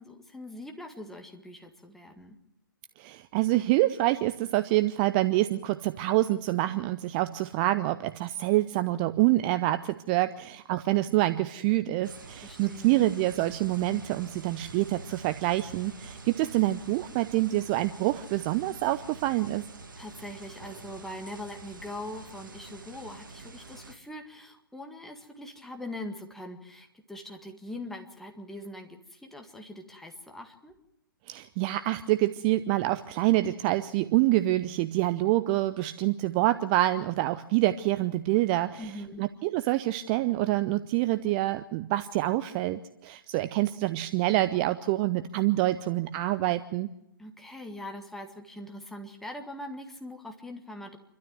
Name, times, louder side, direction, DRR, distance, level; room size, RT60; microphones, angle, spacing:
voice 1, 0.0-2.4 12.4-13.1 20.0-30.8 38.8-39.3 47.2-51.0, left 1 dB, 5° left, 3 dB, 1.9 m, -42 dB
voice 2, 3.0-19.6 31.3-38.9 39.2-46.9, right 16 dB, 25° right, 12 dB, 0.6 m, -26 dB
sound 1, 12.0-23.9, right 3 dB, 65° right, 2.2 m, -46 dB
28.5 x 12.5 x 7.8 m, 0.88 s
figure-of-eight pair, 125°, 12 cm